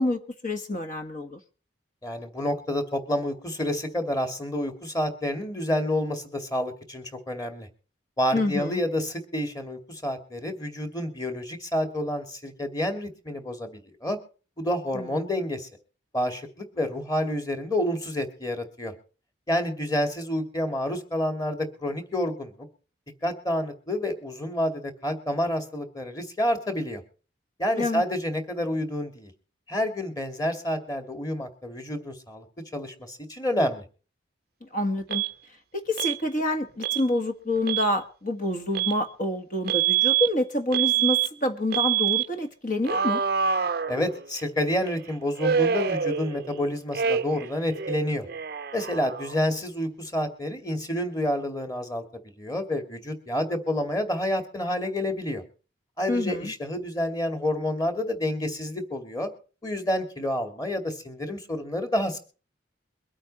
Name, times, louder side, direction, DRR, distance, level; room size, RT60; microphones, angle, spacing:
voice 1, 0.0-1.4 8.3-8.8 14.9-15.1 27.7-28.0 34.6-35.2 35.7-43.2 56.1-56.5, left 1 dB, 45° left, 6 dB, 1.6 m, -27 dB
voice 2, 2.0-7.7 8.2-14.2 14.6-15.7 16.1-18.9 19.5-22.7 23.2-27.0 27.6-29.3 29.7-32.5 32.7-33.8 43.9-48.3 48.7-52.0 52.4-55.4 56.0-59.3 59.6-62.2, left 1 dB, 20° left, 6 dB, 2.4 m, -29 dB
Alarm, 35.1-35.3 36.0-36.2 36.8-37.0 37.6-37.9 38.7-39.0 39.7-40.3 40.7-41.3 41.7-42.3 42.8-44.4 45.4-46.6 46.9-47.5 47.7-49.5, right 8 dB, 55° right, 0.6 m, -26 dB
23.0 x 8.9 x 4.3 m, 0.37 s
head